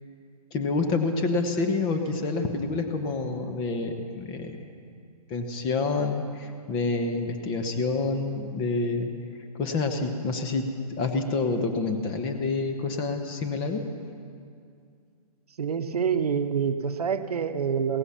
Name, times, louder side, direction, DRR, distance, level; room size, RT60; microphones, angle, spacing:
voice 1, 0.5-4.6 5.3-9.1 9.6-13.9, left 3 dB, 25° left, 6 dB, 1.1 m, -28 dB
voice 2, 15.6-18.0, right 7 dB, 70° right, 10 dB, 0.9 m, -26 dB
16.5 x 15.0 x 5.8 m, 2.3 s
hypercardioid pair, 135°, 20 cm